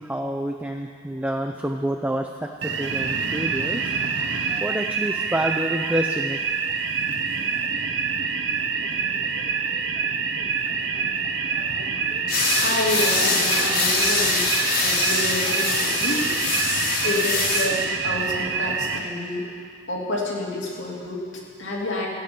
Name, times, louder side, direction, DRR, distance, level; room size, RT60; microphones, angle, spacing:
voice 1, 0.0-3.9 4.2-6.7, right 1 dB, 10° right, 2 dB, 0.5 m, -28 dB
sound 1, 2.6-19.0, right 5 dB, 70° right, 0.9 m, -26 dB
sound 2, 12.3-17.7, left 3 dB, 50° left, 2.0 m, -23 dB
voice 2, 12.6-16.8 17.0-19.5 19.9-22.1, left 1 dB, 75° left, -3 dB, 2.7 m, -29 dB
14.5 x 9.1 x 7.0 m, 2.1 s
head